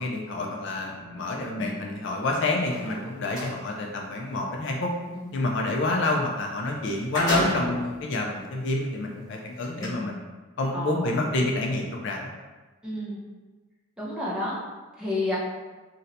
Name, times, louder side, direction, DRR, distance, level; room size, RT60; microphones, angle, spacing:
voice 1, 0.0-4.9 5.3-10.2 10.6-12.2, left 2 dB, 50° left, 1 dB, 0.3 m, -28 dB
voice 2, 1.6-1.9 5.1-5.4 9.8-10.0 10.7-11.1 12.8-13.2 14.0-14.6 15.0-15.4, left 2 dB, 5° right, -7 dB, 0.6 m, -31 dB
sound 1, 2.6-3.5 6.4-6.5 6.8-7.9 8.6-8.7 9.6-9.9, left 1 dB, 15° left, 1.0 m, -30 dB
2.6 x 2.1 x 4.0 m, 1.2 s
head